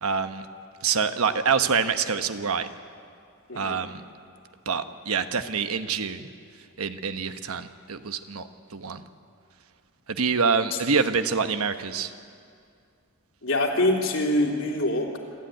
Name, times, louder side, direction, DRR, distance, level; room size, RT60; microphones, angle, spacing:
voice 1, 0.0-0.5 0.8-2.7 3.5-4.0 4.7-6.3 6.8-8.5 8.7-9.0 10.1-12.1, right 5 dB, 85° right, 9 dB, 1.1 m, -26 dB
voice 2, 13.4-15.2, left 1 dB, 65° left, 1 dB, 3.4 m, -24 dB
27.5 x 13.0 x 9.3 m, 2.3 s
head